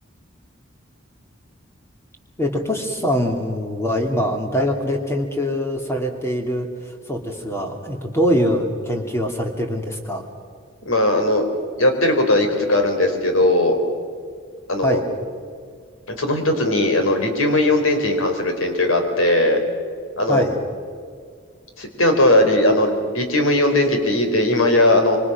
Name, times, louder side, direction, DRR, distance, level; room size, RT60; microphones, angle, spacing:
voice 1, 2.4-10.2 14.8-15.0 20.3-20.6, equal, 10° left, 2 dB, 2.7 m, -23 dB
voice 2, 10.8-11.4 11.8-13.8 14.7-15.0 16.1-19.6 20.2-20.4 21.8-25.2, left 1 dB, 80° left, 5 dB, 4.2 m, -18 dB
26.5 x 24.5 x 6.1 m, 2.1 s
head